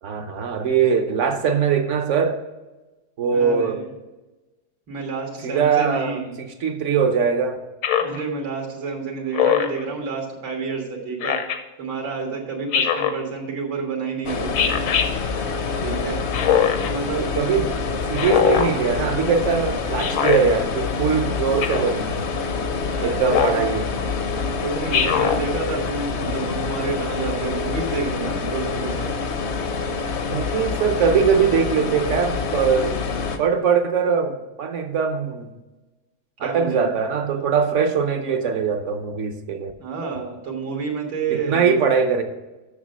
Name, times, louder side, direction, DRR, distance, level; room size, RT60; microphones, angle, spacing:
voice 1, 0.0-2.4 3.2-3.8 5.4-7.6 17.4-17.7 18.1-22.3 23.0-23.8 30.3-33.0 33.4-35.5 36.4-39.7 41.3-42.2, right 6 dB, 60° right, 6 dB, 0.8 m, -21 dB
voice 2, 3.3-3.9 4.9-6.3 8.0-11.4 11.8-14.6 15.8-16.2 16.8-17.6 18.2-18.4 22.9-23.5 24.6-29.1 36.4-36.9 39.8-41.7, right 4 dB, 85° right, 0 dB, 2.3 m, -29 dB
Speech synthesizer, 7.8-8.2 9.3-9.8 11.2-11.6 12.7-13.2 14.5-15.1 16.3-16.9 18.1-18.7 20.0-20.4 21.6-21.9 23.3-23.6 24.9-25.4, left 8 dB, 80° left, 1.5 m, -21 dB
sound 1, 14.2-33.4, left 4 dB, 55° left, 0.7 m, -26 dB
7.3 x 6.5 x 6.3 m, 1.1 s
omnidirectional pair, 2.0 m